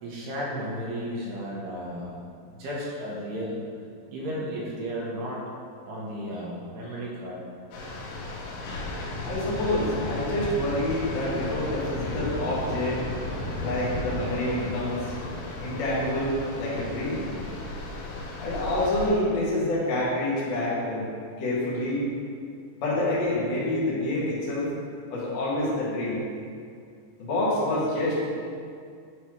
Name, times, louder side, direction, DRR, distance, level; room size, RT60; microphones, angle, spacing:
voice 1, 0.0-2.1 2.5-3.6 4.1-5.4 5.9-7.4, equal, 75° right, -5 dB, 2.6 m, -33 dB
sound 1, 7.7-19.1, left 2 dB, 85° left, 3.5 m, -34 dB
voice 2, 9.2-13.0 13.6-15.1 15.6-17.3 18.4-21.1 21.4-22.1 22.8-24.7 25.1-26.2 27.2-28.3, left 1 dB, 70° left, -7 dB, 1.6 m, -27 dB
8.3 x 3.2 x 5.8 m, 2.3 s
omnidirectional pair, 5.6 m